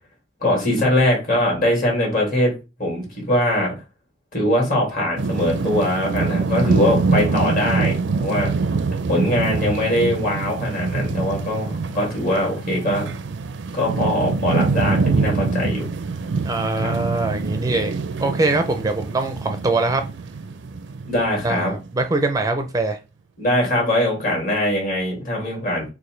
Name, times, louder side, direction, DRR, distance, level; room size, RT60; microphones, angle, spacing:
voice 1, 0.4-2.5 2.8-3.7 4.3-8.5 9.1-13.1 13.7-15.8 16.8-16.9 21.1-21.7 23.4-25.8, left 1 dB, 50° left, 2.9 m, -21 dB
sound 1, 5.2-22.0, right 4 dB, 80° right, 0.4 m, -25 dB
voice 2, 16.4-20.0 21.4-21.6 21.9-23.0, right 2 dB, 20° right, 0.4 m, -22 dB
6.6 x 2.5 x 3.2 m
head